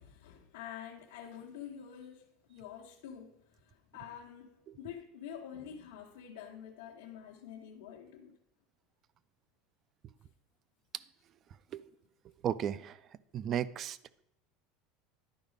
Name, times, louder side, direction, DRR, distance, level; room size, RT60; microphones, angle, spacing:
voice 1, 0.0-8.3, left 9 dB, 90° left, 1.1 m, -47 dB
voice 2, 12.4-13.0 13.3-14.0, right 10 dB, 30° right, 0.3 m, -34 dB
11.0 x 4.9 x 5.2 m
supercardioid pair, 160°, 0 cm